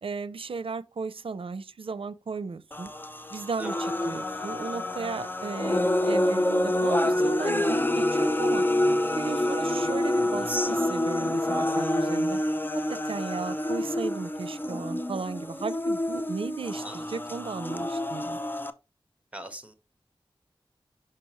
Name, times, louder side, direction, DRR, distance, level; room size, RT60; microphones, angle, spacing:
voice 1, 0.0-2.9 3.3-8.6 9.1-12.4 12.9-18.4, right 4 dB, 75° right, 0.5 m, -35 dB
sound 1, 2.7-18.7, left 1 dB, 20° left, 0.6 m, -27 dB
voice 2, 3.6-3.9 16.8-17.2 19.3-19.7, right 1 dB, 15° right, 1.3 m, -42 dB
6.1 x 5.8 x 3.1 m
wide cardioid pair, 75°, 9 cm